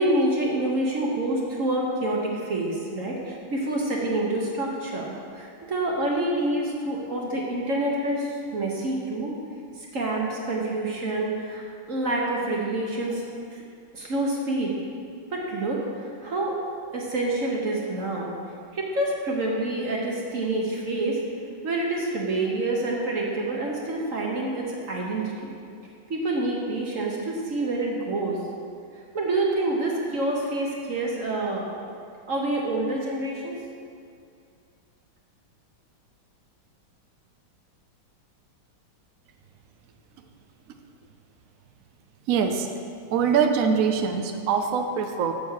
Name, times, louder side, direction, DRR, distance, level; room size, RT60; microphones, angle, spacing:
voice 1, 0.0-9.3 9.9-13.2 13.5-13.6 13.9-14.7 15.3-16.6 16.9-18.3 18.7-21.2 21.6-25.5 26.1-28.4 29.1-31.7 32.3-33.5, right 2 dB, 45° right, -2 dB, 1.2 m, -27 dB
voice 2, 42.3-42.7 43.1-45.3, right 6 dB, 85° right, 5 dB, 0.7 m, -23 dB
7.1 x 7.0 x 6.4 m, 2.4 s
omnidirectional pair, 2.2 m